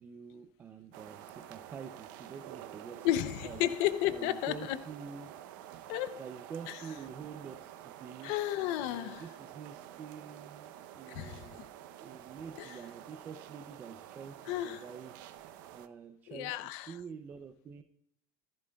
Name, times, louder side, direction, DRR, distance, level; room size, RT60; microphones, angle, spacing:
voice 1, 0.0-3.6 4.1-5.3 6.2-8.3 8.8-11.6 12.0-16.6 16.8-17.8, right 6 dB, 20° right, 0.4 m, -47 dB
sound 1, 0.9-15.9, right 11 dB, 90° right, 0.6 m, -49 dB
voice 2, 3.0-4.8 5.9-6.2 6.7-6.8 8.2-9.3 11.1-11.5 12.6-12.8 14.5-14.8 16.3-17.0, left 13 dB, 60° left, 0.5 m, -33 dB
14.5 x 11.0 x 2.3 m
cardioid pair, 180°, 10 cm